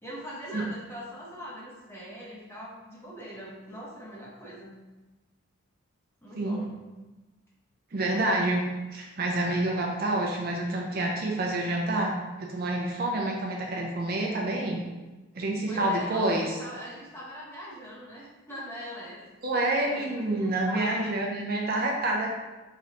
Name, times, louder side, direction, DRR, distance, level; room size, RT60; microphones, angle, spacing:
voice 1, 0.0-4.8 6.2-6.7 11.3-11.6 15.7-19.2 19.9-21.1, equal, 10° left, -6 dB, 0.8 m, -42 dB
voice 2, 7.9-8.7 8.9-12.1 12.4-14.8 15.3-16.6 19.4-22.3, right 2 dB, 45° right, 0 dB, 0.5 m, -28 dB
3.8 x 3.1 x 2.8 m, 1.1 s
head